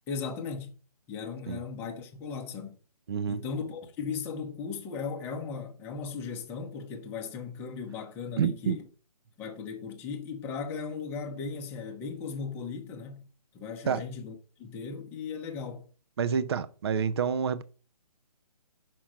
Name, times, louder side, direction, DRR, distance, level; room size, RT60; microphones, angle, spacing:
voice 1, 0.1-0.8 1.1-2.8 3.3-8.8 9.4-13.3 13.5-14.3 14.6-15.8, left 5 dB, 10° left, 0.8 m, -37 dB
voice 2, 3.1-3.4 8.4-8.8 13.9-14.0 16.2-17.6, right 7 dB, 40° right, 0.6 m, -28 dB
6.0 x 5.9 x 6.3 m
hypercardioid pair, 160°, 20 cm